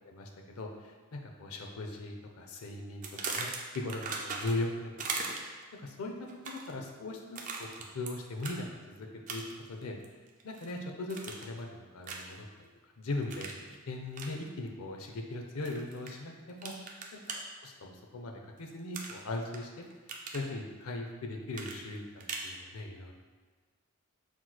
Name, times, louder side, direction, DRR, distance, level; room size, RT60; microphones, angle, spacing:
voice 1, 0.1-3.5 3.7-4.9 5.7-6.1 6.5-9.4 9.7-9.9 10.4-12.7 13.0-13.5 13.9-16.7 17.3-19.8 20.3-23.1, left 2 dB, 80° left, 2 dB, 0.6 m, -39 dB
sound 1, 3.0-4.7 5.0-5.6 6.3-6.7 7.4-8.1 8.4-8.6 9.3-9.7 10.0-10.7 11.1-11.6 12.0-12.4 13.3-13.6 14.1-14.3 15.6-16.1 16.6-17.4 18.9-19.6 19.9-20.5 21.5-22.5, right 4 dB, 35° right, 0.4 m, -38 dB
5.9 x 3.0 x 2.2 m, 1.4 s
head